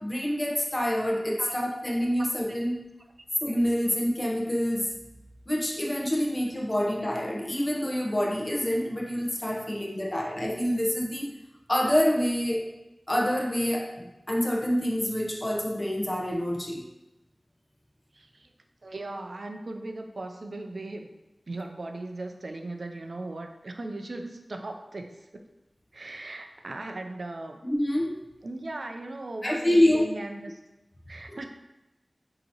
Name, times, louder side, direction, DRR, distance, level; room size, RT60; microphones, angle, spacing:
voice 1, 0.0-2.8 3.4-4.9 5.5-11.3 11.7-12.6 13.1-16.8 27.6-28.2 29.4-30.1 31.3-31.4, equal, 30° left, -2 dB, 0.8 m, -27 dB
voice 2, 2.2-2.6 9.6-9.7 10.1-10.2 18.1-18.5 18.8-21.1 21.5-25.4 25.9-27.6 28.4-30.6 31.1-31.5, right 2 dB, 75° right, 4 dB, 0.4 m, -38 dB
5.2 x 2.9 x 2.8 m, 1.0 s
wide cardioid pair, 65°, 0 cm